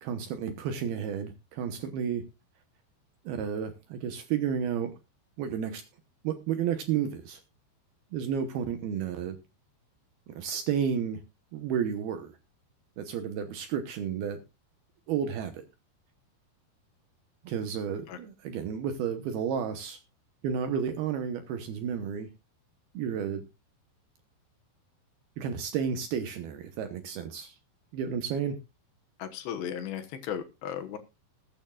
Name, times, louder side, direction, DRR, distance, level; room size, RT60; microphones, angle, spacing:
voice 1, 0.0-2.2 3.3-4.9 5.4-5.8 6.2-7.4 8.1-9.4 10.4-11.2 11.5-12.3 13.0-14.4 15.1-15.6 17.4-20.0 20.4-22.3 22.9-23.5 25.4-27.5 27.9-28.6, right 8 dB, 70° right, 7 dB, 2.5 m, -31 dB
voice 2, 29.2-31.0, left 9 dB, 70° left, 7 dB, 3.1 m, -36 dB
20.5 x 9.0 x 2.4 m, 0.26 s
omnidirectional pair, 5.4 m